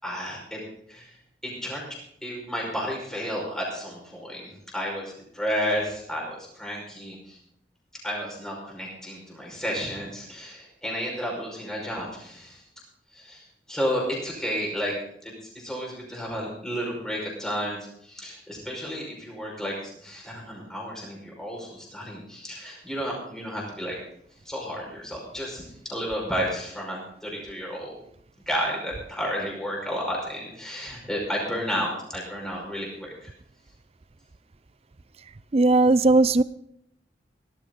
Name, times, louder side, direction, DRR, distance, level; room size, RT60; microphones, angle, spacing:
voice 1, 0.0-0.6 0.9-1.1 1.4-1.8 2.2-7.4 8.0-12.6 13.1-13.4 13.7-14.9 15.2-19.8 20.0-24.0 24.5-25.6 25.9-28.0 28.5-33.1, equal, 5° left, -3 dB, 5.4 m, -32 dB
voice 2, 35.5-36.4, right 2 dB, 35° right, 16 dB, 0.5 m, -18 dB
17.5 x 13.5 x 4.0 m, 0.70 s
head